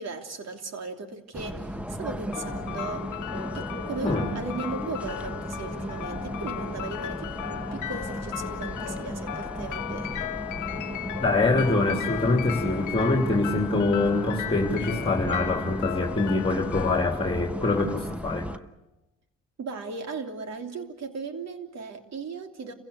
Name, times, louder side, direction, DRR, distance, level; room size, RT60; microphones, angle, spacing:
voice 1, 0.0-3.1 3.5-10.2 19.6-22.7, right 4 dB, 60° right, 5 dB, 3.1 m, -37 dB
sound 1, 1.3-18.6, equal, 5° right, 1.1 m, -35 dB
sound 2, 2.3-18.3, left 13 dB, 80° left, 1.0 m, -37 dB
voice 2, 11.2-18.5, left 2 dB, 20° left, 1 dB, 3.1 m, -24 dB
29.5 x 16.0 x 8.3 m, 0.93 s
cardioid pair, 90°, 30 cm